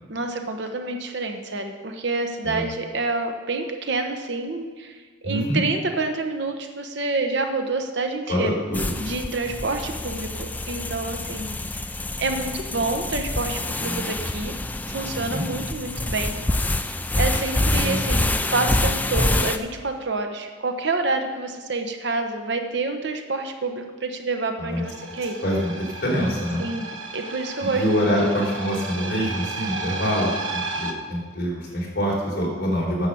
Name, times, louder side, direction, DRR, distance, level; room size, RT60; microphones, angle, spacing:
voice 1, 0.1-8.5 9.0-11.8 12.2-14.5 14.9-16.4 17.2-25.4 26.6-28.1, right 3 dB, 60° right, 5 dB, 1.0 m, -28 dB
voice 2, 5.2-5.6 8.3-8.9 15.1-15.4 17.8-18.0 24.6-24.8 25.4-26.6 27.7-33.1, equal, 50° left, -4 dB, 3.9 m, -25 dB
sound 1, 8.7-19.6, left 2 dB, 10° left, 0.3 m, -26 dB
sound 2, 24.8-30.9, right 3 dB, 75° right, 1.2 m, -33 dB
9.9 x 7.3 x 7.0 m, 1.4 s
head